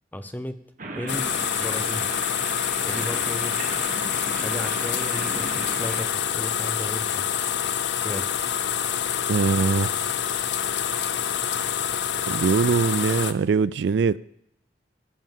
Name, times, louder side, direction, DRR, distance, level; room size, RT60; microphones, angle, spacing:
voice 1, 0.1-0.6 0.9-2.1 2.8-3.5 4.3-7.6 8.0-8.3, equal, 10° left, 10 dB, 0.7 m, -35 dB
sound 1, 0.8-6.0, right 3 dB, 45° right, 1.5 m, -36 dB
sound 2, 1.1-13.3, left 9 dB, 70° left, 0.7 m, -26 dB
voice 2, 9.3-10.0 12.3-14.2, right 5 dB, 70° right, 19 dB, 0.3 m, -22 dB
16.0 x 5.8 x 7.3 m, 0.74 s
head